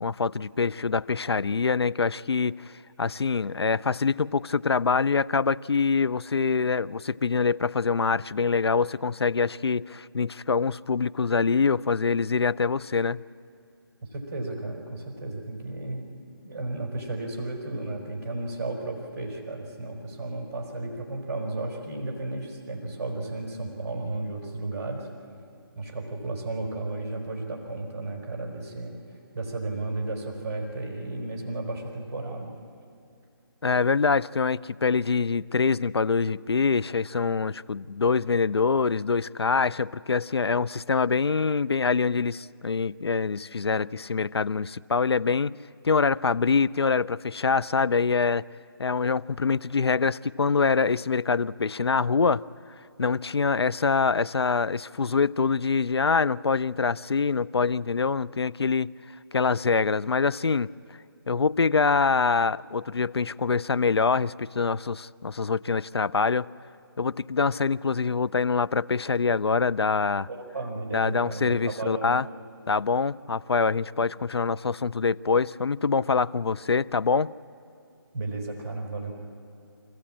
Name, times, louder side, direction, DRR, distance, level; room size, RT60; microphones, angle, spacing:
voice 1, 0.0-2.7 3.0-13.2 33.6-45.6 45.8-48.4 48.8-52.4 53.0-58.9 59.3-60.7 61.3-66.5 67.0-70.3 70.9-72.3 72.7-77.3, left 5 dB, 90° left, 19 dB, 0.5 m, -25 dB
voice 2, 14.1-16.1 16.4-25.1 25.7-28.9 29.3-32.5 70.3-72.1 78.1-79.1, right 2 dB, 40° right, 0 dB, 4.4 m, -33 dB
26.0 x 15.0 x 8.7 m, 2.5 s
figure-of-eight pair, 160°, 13 cm